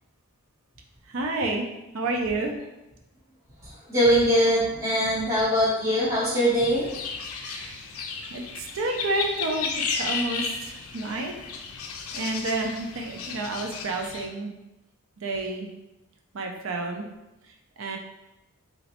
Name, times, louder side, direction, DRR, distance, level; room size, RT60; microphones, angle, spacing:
voice 1, 1.0-1.7 1.9-2.5 7.4-7.8 8.3-11.3 12.1-14.6 15.2-15.7 16.3-17.1 17.4-18.0, right 2 dB, 60° right, 2 dB, 0.5 m, -30 dB
voice 2, 3.6-6.9, equal, 10° right, -10 dB, 0.6 m, -22 dB
sound 1, 6.7-14.3, left 5 dB, 70° left, 0.4 m, -34 dB
3.1 x 3.0 x 2.9 m, 0.95 s
head